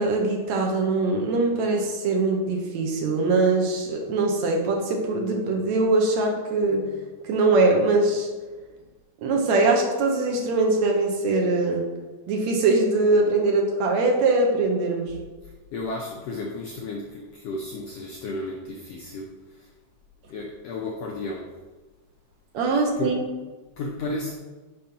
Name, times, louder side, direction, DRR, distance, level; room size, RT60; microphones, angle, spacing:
voice 1, 0.0-6.9 7.2-8.3 9.2-11.8 12.3-15.2 22.5-23.2, right 3 dB, 70° right, 1 dB, 2.1 m, -22 dB
voice 2, 15.4-19.7 20.3-21.5 22.7-23.2 23.8-24.4, left 2 dB, 80° left, 0 dB, 1.4 m, -33 dB
5.8 x 5.1 x 5.3 m, 1.3 s
omnidirectional pair, 3.5 m